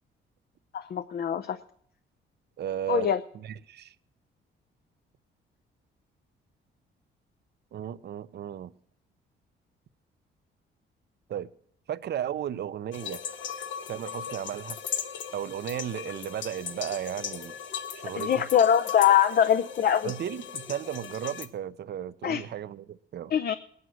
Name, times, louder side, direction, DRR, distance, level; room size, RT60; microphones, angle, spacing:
voice 1, 0.7-1.6 2.9-3.2 18.1-20.1 22.2-22.4 23.3-23.6, left 9 dB, 50° left, 11 dB, 0.7 m, -23 dB
voice 2, 2.6-3.1 3.3-3.9 7.7-8.7 11.3-11.5 11.9-13.2 13.9-14.8 15.3-17.6 17.9-18.5 20.0-23.3, right 10 dB, 55° right, 15 dB, 0.7 m, -35 dB
sound 1, 12.9-21.5, left 8 dB, 70° left, 1.2 m, -38 dB
19.5 x 9.6 x 6.3 m, 0.64 s
cardioid pair, 90°, 20 cm